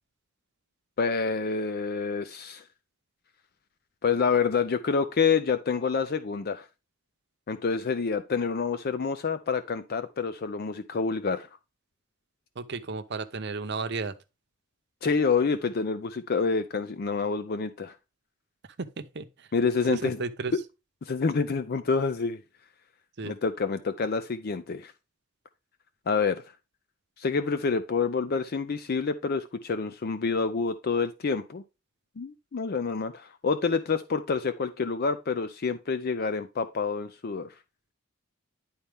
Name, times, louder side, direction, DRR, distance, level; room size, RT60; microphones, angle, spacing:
voice 1, 1.0-2.6 4.0-6.7 7.5-11.5 15.0-17.9 19.5-20.2 21.0-22.4 23.2-24.9 26.1-26.4 27.2-31.6 32.2-37.5, left 5 dB, 50° left, 0.5 m, -27 dB
voice 2, 12.6-14.1 18.8-19.3 19.9-20.5 23.2-23.3, right 4 dB, 55° right, 0.7 m, -33 dB
10.5 x 4.2 x 3.5 m
head